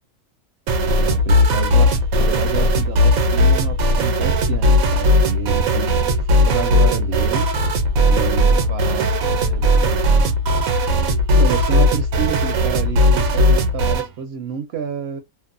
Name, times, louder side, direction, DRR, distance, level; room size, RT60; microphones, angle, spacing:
sound 1, 0.7-14.1, left 1 dB, 90° right, 1.1 m, -17 dB
voice 1, 0.8-7.5 8.1-10.1 11.3-15.2, right 8 dB, 65° right, 0.7 m, -29 dB
2.6 x 2.0 x 2.5 m
omnidirectional pair, 1.5 m